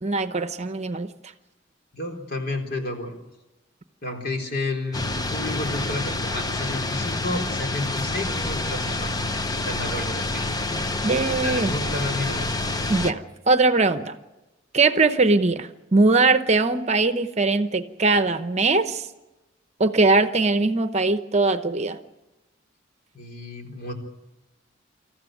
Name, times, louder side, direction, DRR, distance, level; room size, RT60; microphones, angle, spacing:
voice 1, 0.0-1.1 11.0-11.7 12.9-14.1 14.7-19.0 19.8-22.0, right 3 dB, 35° right, 10 dB, 0.9 m, -21 dB
voice 2, 1.9-3.2 4.0-10.5 11.4-12.5 23.1-23.9, left 2 dB, 55° left, 1 dB, 3.9 m, -31 dB
sound 1, 4.9-13.1, left 2 dB, 20° left, 0.8 m, -28 dB
26.5 x 14.5 x 9.3 m, 1.0 s
head